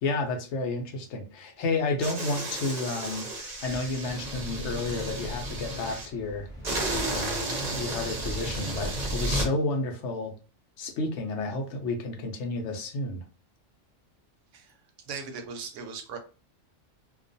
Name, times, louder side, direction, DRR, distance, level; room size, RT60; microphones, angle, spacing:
voice 1, 0.0-6.5 7.0-10.3 10.8-13.2, left 2 dB, 70° left, 3 dB, 0.8 m, -31 dB
sound 1, 2.0-6.1 6.6-9.5, right 1 dB, 40° right, 0.7 m, -32 dB
sound 2, 5.3-7.9, right 1 dB, 10° right, 0.8 m, -45 dB
voice 2, 15.1-16.2, right 5 dB, 75° right, 5 dB, 0.9 m, -38 dB
2.4 x 2.2 x 2.5 m, 0.35 s
omnidirectional pair, 1.3 m